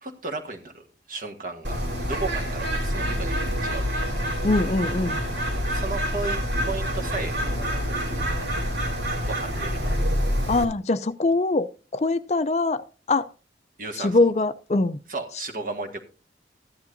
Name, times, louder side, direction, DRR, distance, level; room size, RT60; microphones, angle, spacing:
voice 1, 0.0-1.8 2.1-4.0 5.7-7.4 9.3-9.9 13.8-14.2 15.1-16.0, right 3 dB, 50° right, 4 dB, 1.6 m, -34 dB
Bird, 1.6-10.6, equal, 75° right, 2.6 m, -27 dB
voice 2, 4.4-5.2 10.5-13.3 14.0-15.0, left 2 dB, 35° left, 12 dB, 0.4 m, -23 dB
14.0 x 11.0 x 2.7 m, 0.34 s
head